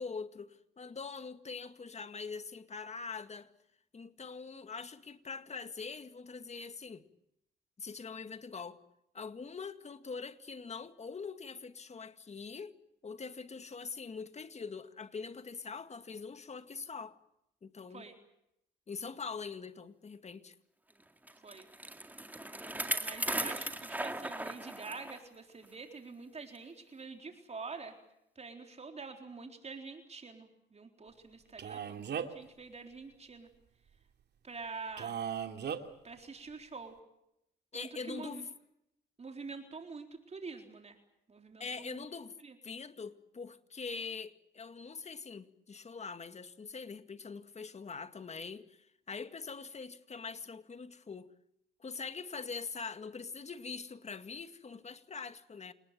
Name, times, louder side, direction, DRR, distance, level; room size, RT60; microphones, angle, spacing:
voice 1, 0.0-3.5 3.9-7.1 7.8-8.8 9.1-12.7 13.0-17.2 17.6-18.0 18.9-20.6 37.7-38.5 41.6-42.3 42.6-51.3 51.8-55.7, left 5 dB, 35° left, 2.0 m, -43 dB
Bicycle, 21.3-25.2 25.6-25.7 26.5-26.6, right 1 dB, 10° right, 2.2 m, -37 dB
voice 2, 23.0-28.0 28.4-33.5 34.4-35.2 36.0-37.0 37.7-38.4 39.2-41.0 41.3-42.1 42.4-42.6, right 4 dB, 35° right, 3.8 m, -46 dB
Male speech man speaking, 31.6-32.5 35.0-35.8, right 8 dB, 60° right, 2.6 m, -37 dB
28.5 x 19.5 x 7.6 m
cardioid pair, 90°, 20 cm